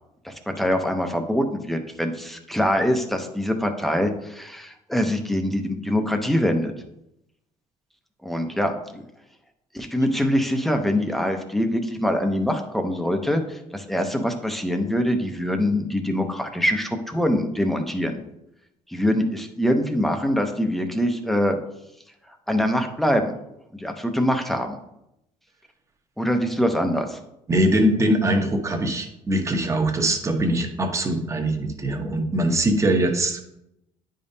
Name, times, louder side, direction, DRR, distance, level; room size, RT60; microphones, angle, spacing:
voice 1, 0.2-6.7 8.2-9.1 9.7-18.2 18.9-21.6 22.5-23.3 23.8-24.7 26.2-27.2, equal, ahead, 5 dB, 0.7 m, -24 dB
voice 2, 27.5-33.4, right 1 dB, 20° right, 4 dB, 0.9 m, -22 dB
9.8 x 5.2 x 2.7 m, 0.83 s
cardioid pair, 145°, 14 cm